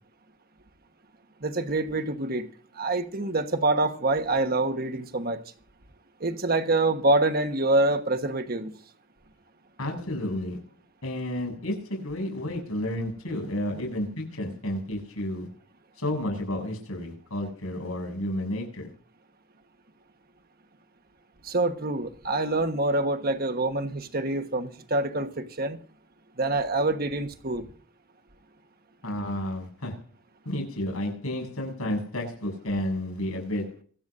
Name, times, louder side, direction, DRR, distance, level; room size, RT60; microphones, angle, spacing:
voice 1, 1.4-2.5 2.7-5.4 6.2-8.7 21.4-25.8 26.4-27.7, right 2 dB, 45° right, 1.3 m, -26 dB
voice 2, 9.8-10.6 11.0-15.6 16.0-18.9 29.0-30.0 30.5-33.8, left 1 dB, 85° left, 7.3 m, -31 dB
26.0 x 9.2 x 2.6 m
head